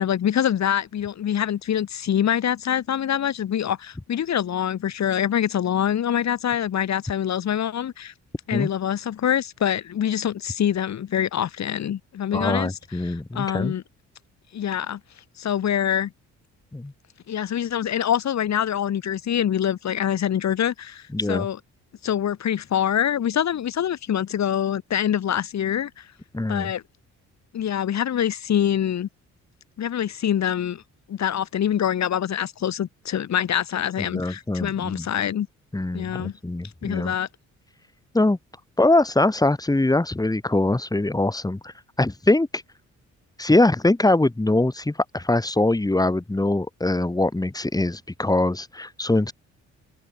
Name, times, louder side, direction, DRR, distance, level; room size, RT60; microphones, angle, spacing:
voice 1, 0.0-8.1 8.5-12.8 13.0-13.8 14.5-15.0 15.4-16.1 17.3-21.6 22.0-26.1 26.5-26.8 27.5-29.1 29.8-30.8 31.1-35.5 35.9-36.3 36.8-37.3, left 10 dB, 65° left, 6.5 m, -25 dB
voice 2, 12.3-13.7 16.7-16.9 21.1-21.5 26.3-26.7 34.0-35.1 35.7-37.1 38.1-38.4 38.8-41.7 42.0-42.6 43.4-49.3, left 2 dB, 10° left, 4.7 m, -22 dB
cardioid pair, 90°, 30 cm